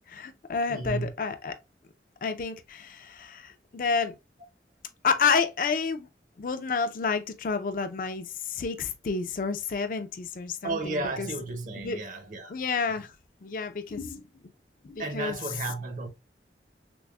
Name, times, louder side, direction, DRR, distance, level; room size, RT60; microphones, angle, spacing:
voice 1, 0.0-1.5 2.2-4.1 5.0-6.1 6.4-11.3 11.8-12.0 12.5-13.1 13.4-14.2 14.8-15.4, left 5 dB, 50° left, 0.4 m, -30 dB
voice 2, 0.7-1.1 10.6-12.5 15.0-16.1, right 2 dB, 45° right, 0.6 m, -33 dB
5.9 x 2.0 x 2.3 m
head